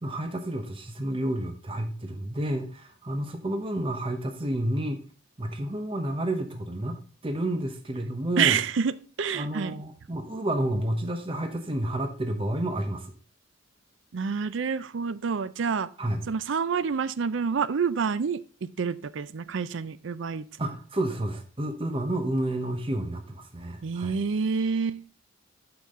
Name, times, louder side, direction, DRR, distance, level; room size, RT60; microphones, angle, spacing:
voice 1, 0.0-5.0 5.4-8.6 9.3-13.1 16.0-16.2 20.6-24.2, right 1 dB, 25° right, 5 dB, 0.8 m, -30 dB
voice 2, 8.4-9.7 14.1-15.9 16.3-20.4 23.8-25.0, right 6 dB, 65° right, 16 dB, 0.5 m, -28 dB
8.6 x 6.1 x 3.6 m, 0.41 s
head